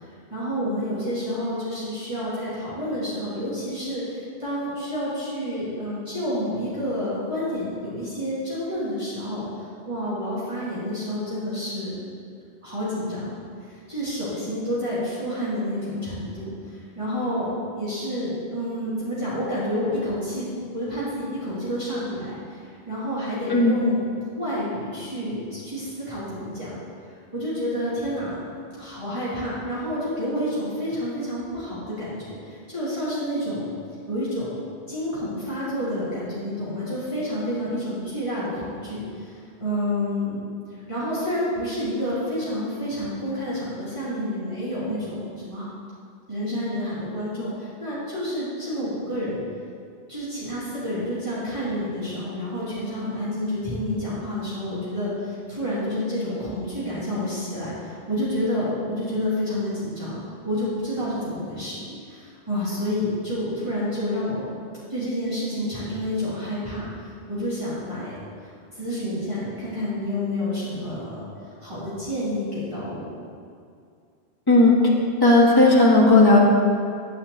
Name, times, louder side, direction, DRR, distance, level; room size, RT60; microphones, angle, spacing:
voice 1, 0.3-12.0 12.6-13.3 13.7-17.5 17.7-24.0 24.4-26.8 27.3-28.4 28.8-33.7 34.1-34.6 34.9-39.3 39.6-40.4 40.7-45.7 46.3-49.4 50.1-64.5 64.9-68.2 68.7-71.2 71.6-73.2, equal, 30° right, -11 dB, 2.8 m, -29 dB
voice 2, 75.2-76.4, left 2 dB, 20° left, -4 dB, 1.5 m, -15 dB
9.5 x 5.6 x 8.0 m, 2.3 s
omnidirectional pair, 1.1 m